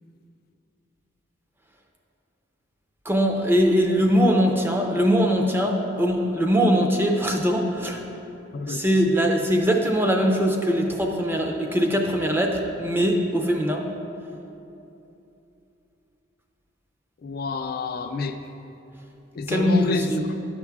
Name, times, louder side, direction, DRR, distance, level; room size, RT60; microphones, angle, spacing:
voice 1, 3.1-8.0 8.7-13.9 19.5-20.2, equal, 10° right, 2 dB, 0.5 m, -21 dB
voice 2, 17.2-18.4 19.4-20.1, left 4 dB, 50° left, 7 dB, 0.3 m, -27 dB
10.5 x 5.8 x 3.5 m, 2.9 s
head